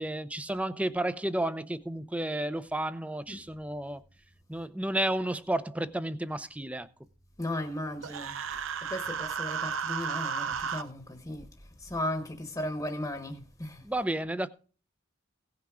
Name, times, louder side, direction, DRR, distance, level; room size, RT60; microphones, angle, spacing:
voice 1, 0.0-4.0 4.5-6.9 13.8-14.5, right 1 dB, 5° right, 0.5 m, -32 dB
voice 2, 7.4-13.9, left 1 dB, 20° left, 1.1 m, -36 dB
Human voice, 8.0-10.8, right 6 dB, 90° right, 0.7 m, -33 dB
17.0 x 5.9 x 4.8 m
head